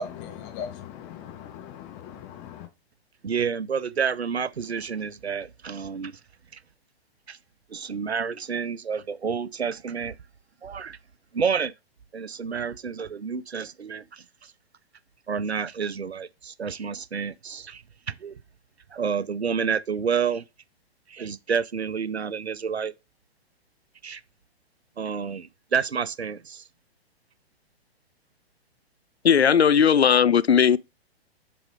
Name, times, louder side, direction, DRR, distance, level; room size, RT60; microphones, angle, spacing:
voice 1, 0.0-2.7, left 4 dB, 30° left, 1.4 m, -38 dB
voice 2, 3.2-6.2 6.5-6.6 7.3-7.4 7.7-10.1 10.6-11.0 11.3-11.7 12.1-14.2 15.3-18.3 18.9-20.4 21.1-22.9 24.0-24.2 25.0-26.6, right 6 dB, 85° right, 0.6 m, -29 dB
voice 3, 29.2-30.8, left 7 dB, 85° left, 0.5 m, -17 dB
7.1 x 4.2 x 4.8 m
figure-of-eight pair, 115°, 31 cm